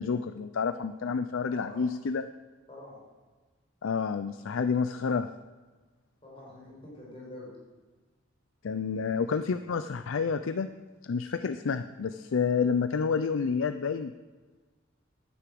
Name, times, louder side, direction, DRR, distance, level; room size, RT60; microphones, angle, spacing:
voice 1, 0.0-2.3 3.8-5.3 8.6-10.7 11.0-14.1, left 5 dB, 80° left, 10 dB, 0.5 m, -29 dB
voice 2, 1.5-1.9 2.7-3.0 6.2-7.5, left 1 dB, 25° left, -5 dB, 4.9 m, -46 dB
10.0 x 9.5 x 7.7 m, 1.3 s
head